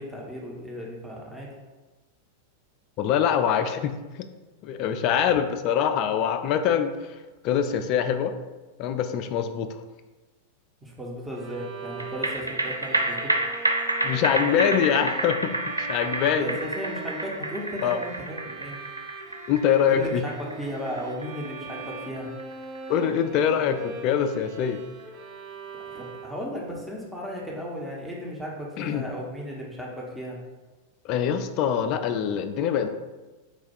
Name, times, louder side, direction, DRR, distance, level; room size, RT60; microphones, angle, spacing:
voice 1, 0.0-1.5 10.8-13.4 16.3-18.8 19.9-22.3 25.8-30.4, equal, 5° right, -3 dB, 0.8 m, -35 dB
voice 2, 3.0-4.3 4.6-7.0 7.4-8.4 8.8-9.7 14.0-16.5 17.8-18.0 19.5-20.2 22.9-24.8 28.8-29.1 31.0-32.9, left 8 dB, 40° left, 9 dB, 0.3 m, -24 dB
Bowed string instrument, 11.3-26.6, right 3 dB, 35° right, 0.5 m, -41 dB
sound 1, 12.0-24.7 25.0-25.1, right 2 dB, 85° right, 0.3 m, -30 dB
4.4 x 2.2 x 4.3 m, 1.2 s
figure-of-eight pair, 90°, 0 cm